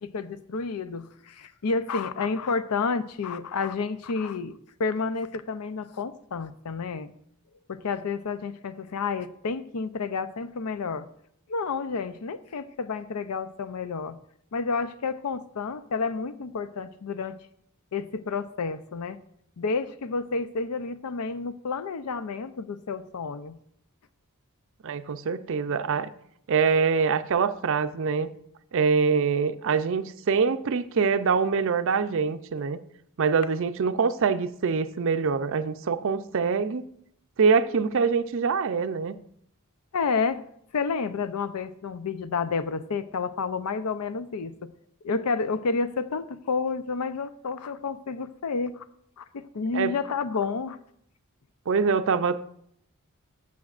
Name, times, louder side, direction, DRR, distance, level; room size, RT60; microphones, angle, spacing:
voice 1, 0.0-7.1 7.7-11.1 11.5-14.2 14.5-17.4 17.9-19.2 19.6-23.6 39.9-40.4 40.7-44.7 45.0-48.8 49.2-50.8, left 4 dB, 85° left, 13 dB, 0.5 m, -30 dB
voice 2, 24.8-26.1 26.5-28.3 28.7-32.8 33.2-36.8 37.4-39.2 49.7-49.9 51.7-52.6, right 5 dB, 60° right, 12 dB, 0.5 m, -24 dB
12.5 x 7.2 x 2.4 m, 0.70 s
head